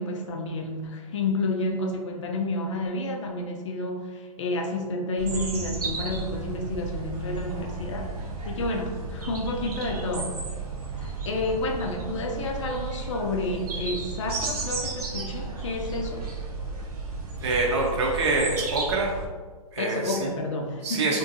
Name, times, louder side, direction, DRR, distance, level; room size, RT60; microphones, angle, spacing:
voice 1, 0.0-8.1 8.4-10.3 11.0-16.3 19.8-21.1, left 2 dB, 50° left, 2 dB, 0.5 m, -30 dB
sound 1, 5.2-19.3, right 4 dB, 80° right, 0.9 m, -34 dB
voice 2, 17.4-19.1 19.7-20.3 20.8-21.2, right 3 dB, 45° right, -1 dB, 0.7 m, -25 dB
3.7 x 2.6 x 2.7 m, 1.5 s
hypercardioid pair, 160°, 19 cm